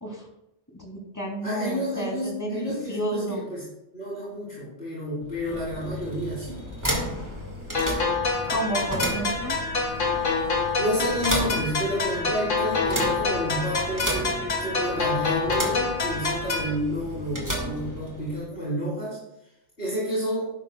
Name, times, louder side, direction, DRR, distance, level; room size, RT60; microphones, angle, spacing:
voice 1, 0.7-3.5 8.5-9.6, right 1 dB, 15° left, 0 dB, 2.7 m, -31 dB
voice 2, 1.4-3.7 3.9-6.6 10.8-19.2 19.8-20.5, equal, 60° left, -8 dB, 4.2 m, -30 dB
sound 1, 5.2-18.5, equal, 15° right, 1.9 m, -33 dB
sound 2, 7.7-16.7, left 4 dB, 85° left, 2.1 m, -27 dB
12.5 x 11.0 x 2.3 m, 0.86 s
omnidirectional pair, 1.2 m